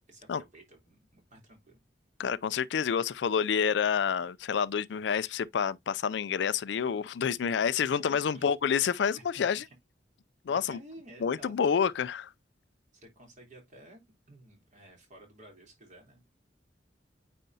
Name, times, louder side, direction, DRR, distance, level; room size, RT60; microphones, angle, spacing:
voice 1, 0.1-1.8 7.8-8.5 9.3-9.7 10.5-11.7 12.9-14.0 14.3-16.2, right 1 dB, 45° right, 3.3 m, -53 dB
voice 2, 2.2-9.6 10.5-10.8 11.2-12.3, left 7 dB, 70° left, 0.4 m, -28 dB
9.0 x 4.2 x 2.7 m
head